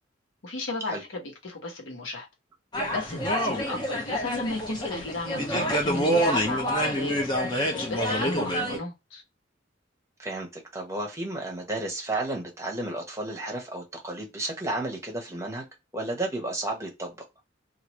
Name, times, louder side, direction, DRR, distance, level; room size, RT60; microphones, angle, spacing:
voice 1, 0.4-2.3 2.9-7.3 7.7-9.2, left 2 dB, 85° left, 1.1 m, -35 dB
sound 1, 2.7-8.8, equal, 25° left, 0.8 m, -27 dB
voice 2, 10.2-15.6 15.9-17.1, right 2 dB, 15° right, 1.0 m, -32 dB
3.0 x 2.5 x 2.9 m
head